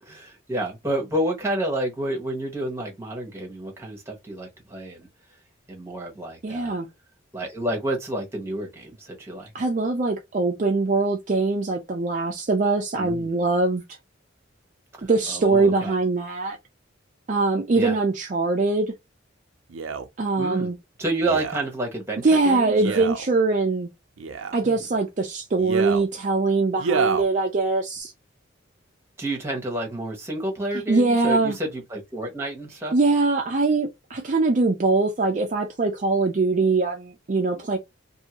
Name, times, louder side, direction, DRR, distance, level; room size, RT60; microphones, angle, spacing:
voice 1, 0.0-5.1 5.7-6.8 7.3-9.5 13.0-13.4 15.0-15.9 17.7-18.0 20.4-20.7 21.0-23.0 24.6-24.8 29.2-32.9, right 1 dB, 15° right, 1.1 m, -30 dB
voice 2, 6.4-6.9 9.5-13.8 15.0-16.6 17.3-18.9 20.2-20.7 22.2-23.9 24.5-28.1 30.7-31.6 32.9-37.8, right 3 dB, 40° right, 0.4 m, -22 dB
Male speech man speaking, 19.7-20.1 21.2-21.6 22.7-23.3 24.2-24.6 25.6-26.1 26.8-27.3 28.0-28.1, right 5 dB, 90° right, 0.5 m, -28 dB
2.7 x 2.6 x 2.8 m
head